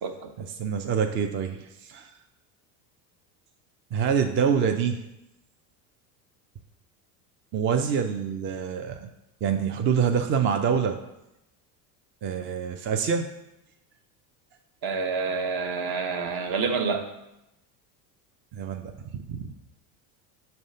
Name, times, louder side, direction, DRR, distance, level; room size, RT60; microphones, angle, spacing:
voice 1, 0.4-2.1 3.9-5.0 7.5-9.1 9.4-11.0 12.2-13.3 18.5-18.9 19.3-19.5, right 7 dB, 30° right, 5 dB, 0.3 m, -26 dB
voice 2, 14.8-17.1, right 5 dB, 45° right, 6 dB, 0.9 m, -28 dB
5.4 x 3.3 x 5.4 m, 0.89 s
hypercardioid pair, 80°, 49 cm